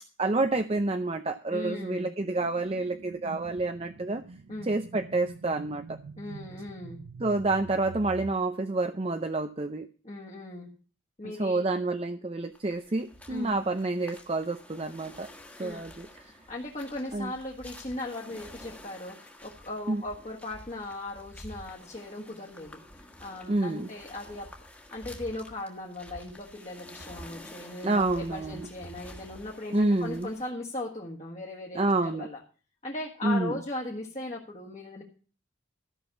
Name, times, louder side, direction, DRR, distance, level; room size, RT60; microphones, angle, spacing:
voice 1, 0.2-4.2 4.6-5.8 7.2-9.9 11.4-15.3 15.6-16.2 17.1-17.3 19.9-20.0 23.5-23.9 27.8-28.7 29.7-30.3 31.7-32.3 33.2-33.6, right 2 dB, 30° right, 8 dB, 0.5 m, -28 dB
voice 2, 1.5-2.1 4.5-4.7 6.2-7.0 10.0-10.7 11.2-11.6 13.3-13.6 15.6-15.9 16.2-24.5 24.7-32.4 32.8-35.0, left 2 dB, 35° left, -1 dB, 1.6 m, -38 dB
sound 1, 2.3-8.3, right 4 dB, 80° right, 0.5 m, -46 dB
sound 2, 12.5-30.5, left 1 dB, 10° left, 1.5 m, -49 dB
13.5 x 6.2 x 7.1 m, 0.38 s
head